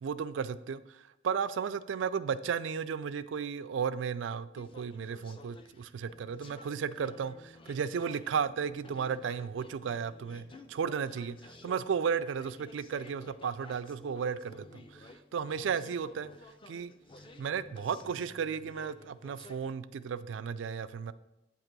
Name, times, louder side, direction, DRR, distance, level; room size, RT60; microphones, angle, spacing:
voice 1, 0.0-16.3 16.7-16.9 17.4-21.1, right 6 dB, 85° right, 0.3 m, -34 dB
sound 1, 4.6-19.7, left 2 dB, 30° left, 0.4 m, -53 dB
8.7 x 2.9 x 6.0 m
head